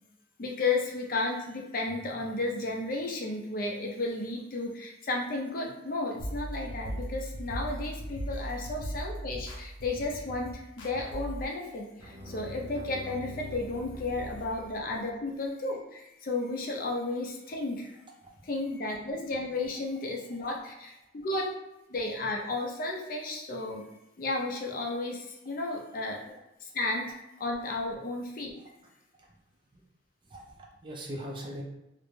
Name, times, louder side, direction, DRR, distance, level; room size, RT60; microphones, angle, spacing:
voice 1, 0.4-18.0 18.5-21.5 21.9-23.8 24.2-28.5, left 2 dB, 45° left, 0 dB, 0.4 m, -33 dB
sound 1, 6.2-11.4, right 1 dB, 85° left, 0.6 m, -38 dB
sound 2, 12.0-15.1, equal, 70° right, 0.7 m, -44 dB
voice 2, 30.2-31.6, equal, 25° right, -1 dB, 0.4 m, -42 dB
2.5 x 2.1 x 3.1 m, 0.92 s
head